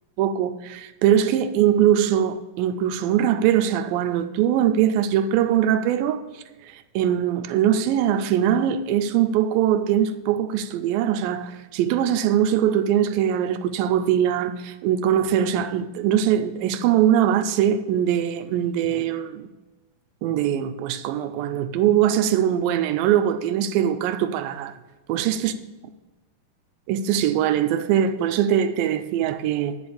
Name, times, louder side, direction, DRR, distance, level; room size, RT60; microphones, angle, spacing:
voice 1, 0.2-19.5 20.2-24.8 25.1-25.5 26.9-29.8, right 10 dB, 80° right, 2.3 m, -22 dB
10.5 x 5.3 x 6.8 m
omnidirectional pair, 4.2 m